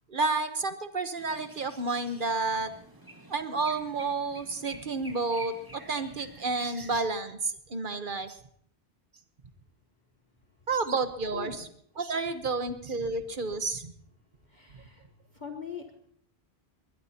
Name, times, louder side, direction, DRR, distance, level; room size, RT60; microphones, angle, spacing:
voice 1, 0.1-2.7 3.3-8.4 10.7-11.7 12.0-13.9, right 3 dB, 50° right, 9 dB, 1.2 m, -30 dB
sound 1, 1.2-7.0, right 2 dB, 20° right, 2.3 m, -49 dB
voice 2, 11.3-11.7 14.4-15.9, left 7 dB, 45° left, 3 dB, 1.4 m, -42 dB
20.5 x 20.5 x 2.9 m, 0.64 s
omnidirectional pair, 1.1 m